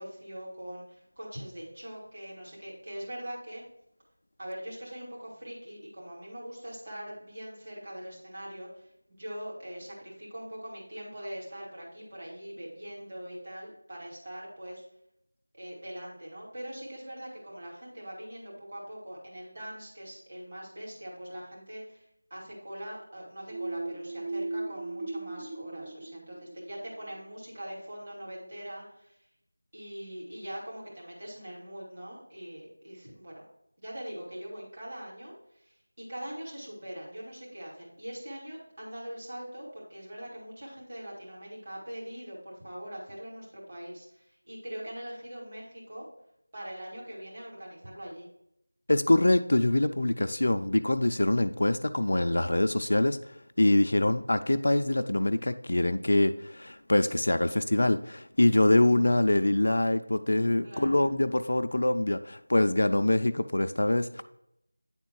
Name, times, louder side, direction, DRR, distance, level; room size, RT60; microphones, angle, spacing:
voice 1, 0.0-3.6 4.4-14.8 15.5-29.3 29.7-33.5 33.8-46.0 46.5-48.3 60.6-61.2, equal, 35° right, -5 dB, 2.5 m, -42 dB
sound 1, 23.5-27.2, right 2 dB, 10° right, 0.4 m, -37 dB
voice 2, 48.9-53.2 53.6-64.2, left 1 dB, 55° left, 9 dB, 0.4 m, -24 dB
9.2 x 3.7 x 4.4 m, 0.78 s
figure-of-eight pair, 175°, 0 cm